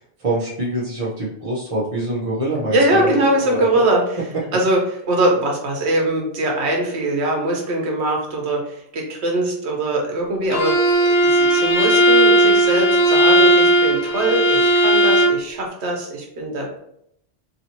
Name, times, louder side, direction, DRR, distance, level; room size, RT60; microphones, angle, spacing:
voice 1, 0.0-3.8, right 1 dB, 35° right, -7 dB, 0.7 m, -25 dB
voice 2, 2.7-4.0 4.5-4.8 5.1-10.8 11.2-16.8, right 1 dB, 65° right, 0 dB, 1.1 m, -21 dB
Bowed string instrument, 10.5-15.4, right 1 dB, 60° left, 0.8 m, -15 dB
3.0 x 2.8 x 2.8 m, 0.73 s
omnidirectional pair, 1.2 m